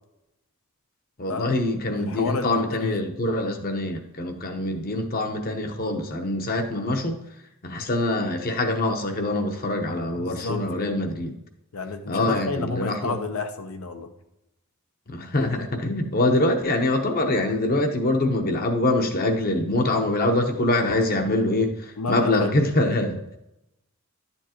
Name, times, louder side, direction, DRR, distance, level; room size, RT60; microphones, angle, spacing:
voice 1, 1.2-7.2 7.6-11.3 12.1-13.2 15.1-21.7 22.1-23.2, left 2 dB, 40° left, 5 dB, 0.9 m, -24 dB
voice 2, 2.0-3.0 10.1-10.9 11.7-14.1 22.0-22.7, left 3 dB, 75° left, 7 dB, 0.8 m, -31 dB
11.0 x 7.2 x 2.9 m, 0.91 s
head